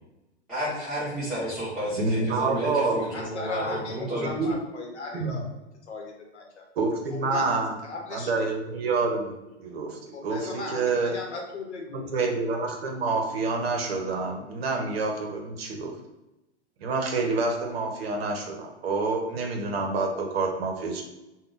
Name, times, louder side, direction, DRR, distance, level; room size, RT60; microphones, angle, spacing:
voice 1, 0.5-4.4, right 1 dB, ahead, -15 dB, 1.3 m, -31 dB
voice 2, 2.0-3.0 4.1-4.5 5.1-5.4 6.8-7.7 8.1-11.1 12.1-15.9 16.8-21.0, right 3 dB, 60° right, 2 dB, 0.7 m, -28 dB
voice 3, 2.8-5.5 5.9-6.7 7.1-7.5 7.8-8.3 10.1-12.1, left 3 dB, 75° left, 0 dB, 0.8 m, -37 dB
3.5 x 2.1 x 2.5 m, 0.97 s
figure-of-eight pair, 105°, 34 cm